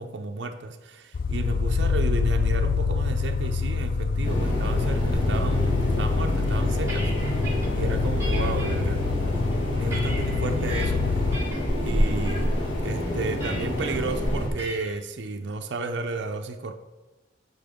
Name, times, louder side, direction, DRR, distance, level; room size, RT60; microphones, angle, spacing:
voice 1, 0.0-9.0 9.8-11.5 11.8-12.6 12.8-16.7, right 3 dB, 65° right, 5 dB, 0.5 m, -33 dB
sound 1, 1.1-11.4, left 4 dB, 45° left, 0.4 m, -26 dB
sound 2, 4.2-14.5, equal, 85° left, 1.9 m, -28 dB
sound 3, 6.5-7.7 8.2-8.7 9.3-10.9 11.3-11.7 12.0-12.4 13.4-13.9 14.6-15.0, right 2 dB, 15° right, 1.6 m, -38 dB
8.7 x 5.8 x 3.6 m, 1.2 s
head